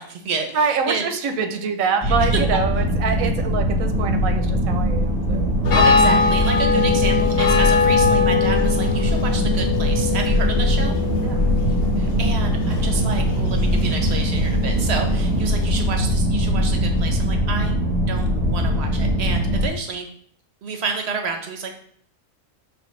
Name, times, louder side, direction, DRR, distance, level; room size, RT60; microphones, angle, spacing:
voice 1, 0.0-1.0 2.0-2.6 5.7-11.0 12.0-17.8 18.1-20.1 20.6-21.7, right 4 dB, 65° right, 4 dB, 0.7 m, -29 dB
voice 2, 0.5-5.5 11.2-11.4, right 5 dB, 85° right, 6 dB, 1.0 m, -25 dB
sound 1, 2.0-19.7, equal, 15° right, 0.8 m, -21 dB
sound 2, 5.6-15.9, left 5 dB, 55° left, 0.8 m, -23 dB
4.9 x 3.1 x 3.1 m, 0.63 s
omnidirectional pair, 1.4 m